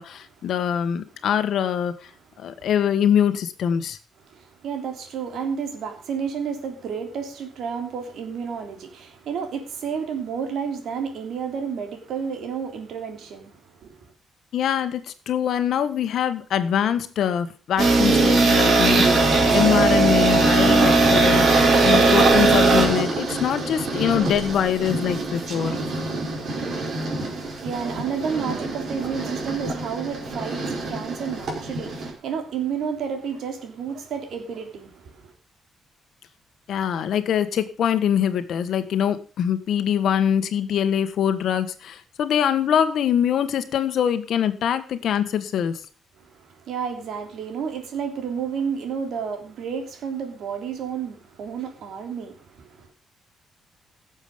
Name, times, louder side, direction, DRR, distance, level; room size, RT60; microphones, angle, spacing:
voice 1, 0.0-2.1 2.4-4.0 14.5-25.8 36.7-45.8, left 9 dB, 65° left, 1.5 m, -23 dB
voice 2, 4.3-14.1 27.4-35.3 46.2-52.9, right 6 dB, 70° right, 3.2 m, -31 dB
sound 1, 17.8-32.1, right 3 dB, 50° right, 4.7 m, -21 dB
17.0 x 7.3 x 5.2 m
cardioid pair, 150°, 0 cm